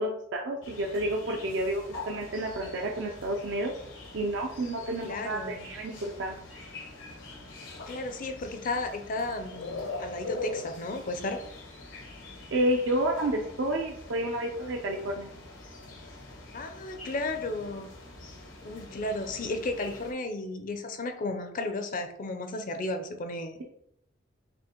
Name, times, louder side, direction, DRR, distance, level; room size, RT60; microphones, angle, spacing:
voice 1, 0.0-3.7 4.1-6.4 12.5-15.3, right 1 dB, 70° right, 0 dB, 0.5 m, -30 dB
sound 1, 0.6-20.1, left 2 dB, 85° left, 1.1 m, -43 dB
voice 2, 5.0-5.7 7.9-11.4 16.5-17.9 18.6-23.6, left 2 dB, 45° left, 7 dB, 0.5 m, -34 dB
6.2 x 2.5 x 2.9 m, 0.75 s
head